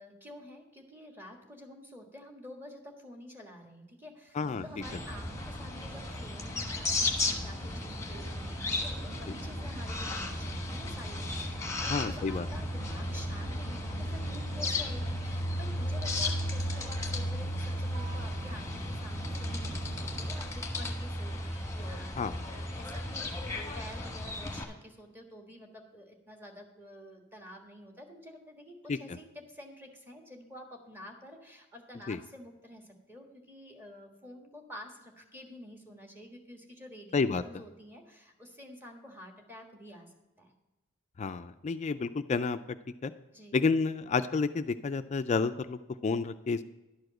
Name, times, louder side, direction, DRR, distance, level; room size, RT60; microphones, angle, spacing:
voice 1, 0.0-4.3 4.6-22.1 22.5-40.5 43.3-43.6, left 1 dB, 10° right, 2 dB, 1.5 m, -49 dB
sound 1, 4.4-20.3, right 2 dB, 25° right, 0.7 m, -47 dB
sound 2, 4.8-24.6, left 1 dB, 15° left, 1.2 m, -35 dB
voice 2, 11.9-12.5 22.2-22.4 28.9-29.0 32.1-32.2 37.1-37.4 41.2-42.8 43.0-43.1 43.5-46.6, left 4 dB, 35° left, 11 dB, 0.3 m, -30 dB
sound 3, 15.8-20.8, right 1 dB, 80° right, 1.7 m, -53 dB
11.5 x 4.9 x 7.7 m, 1.0 s
head